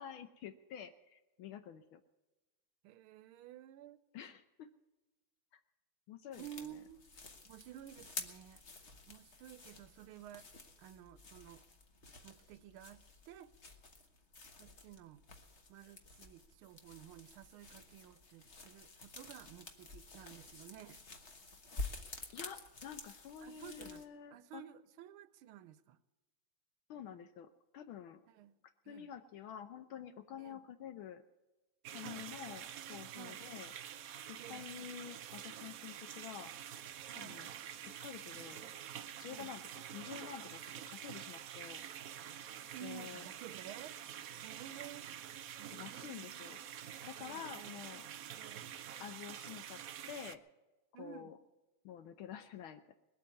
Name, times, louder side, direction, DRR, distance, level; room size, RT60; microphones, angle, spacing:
voice 1, 0.0-2.0 4.1-4.7 5.5-5.6 6.1-6.5 6.7-6.8 22.3-24.6 26.9-28.2 28.9-31.2 31.9-33.7 34.3-36.5 37.2-37.5 38.0-38.6 39.2-41.9 42.8-43.3 45.7-46.6 47.0-48.1 49.0-49.8 50.1-50.4 51.0-51.4 51.8-52.9, left 9 dB, 80° left, 9 dB, 1.6 m, -49 dB
voice 2, 2.8-4.0 6.3-7.1 7.4-8.6 9.1-10.5 10.8-11.6 12.2-13.5 14.6-15.2 15.7-21.0 23.4-24.1 24.3-26.0 27.1-27.2 28.3-28.6 28.8-29.1 30.4-30.6 32.0-32.3 33.1-33.5 34.4-34.7 37.1-37.5 39.3-39.5 42.6-44.0 44.4-45.1 45.6-46.5 47.2-47.8 48.3-48.7 50.9-51.3, right 11 dB, 90° right, 14 dB, 1.6 m, -53 dB
sound 1, 6.3-24.1, left 3 dB, 35° left, 1.5 m, -50 dB
sound 2, 31.8-50.3, right 10 dB, 70° right, 0.8 m, -47 dB
20.5 x 8.5 x 8.3 m, 1.1 s
omnidirectional pair, 2.3 m